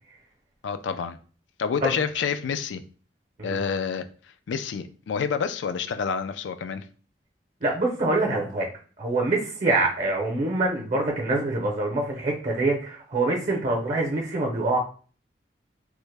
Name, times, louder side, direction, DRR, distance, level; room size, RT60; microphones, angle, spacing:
voice 1, 0.6-1.2 1.6-2.8 3.4-4.0 4.5-6.9, left 6 dB, 85° left, 0.4 m, -28 dB
voice 2, 7.6-8.7 9.0-14.8, right 2 dB, 45° right, 0.7 m, -25 dB
3.3 x 2.1 x 3.2 m
head